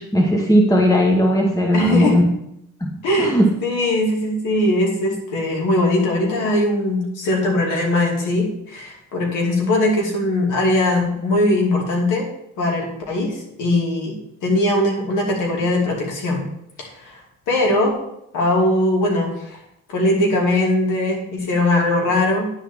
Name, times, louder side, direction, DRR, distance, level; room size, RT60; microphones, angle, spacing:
voice 1, 0.0-2.3 2.8-3.5, equal, 10° left, 1 dB, 1.1 m, -17 dB
voice 2, 1.7-2.2 3.0-12.3 12.6-16.4 16.8-17.2 17.5-18.0 18.3-19.6 19.9-22.5, left 1 dB, 85° left, -1 dB, 2.7 m, -20 dB
9.9 x 4.2 x 7.0 m, 0.79 s
cardioid pair, 90°, 30 cm